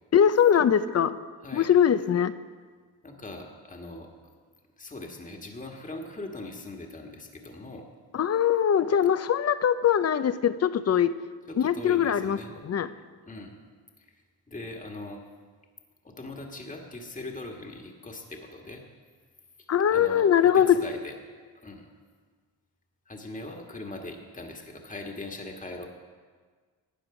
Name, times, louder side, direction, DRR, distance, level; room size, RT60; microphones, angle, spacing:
voice 1, 0.1-1.2 1.5-2.3 8.1-11.1 11.6-12.4 12.6-12.9 19.7-20.8, left 9 dB, 40° left, 14 dB, 0.6 m, -22 dB
voice 2, 1.4-1.7 3.0-4.1 4.8-7.9 11.5-12.5 13.3-13.5 14.0-15.2 16.0-18.8 19.6-20.3 20.5-21.1 21.6-21.9 23.1-25.9, left 2 dB, 20° left, 2 dB, 1.5 m, -40 dB
13.0 x 8.8 x 5.0 m, 1.6 s
supercardioid pair, 60°, 41 cm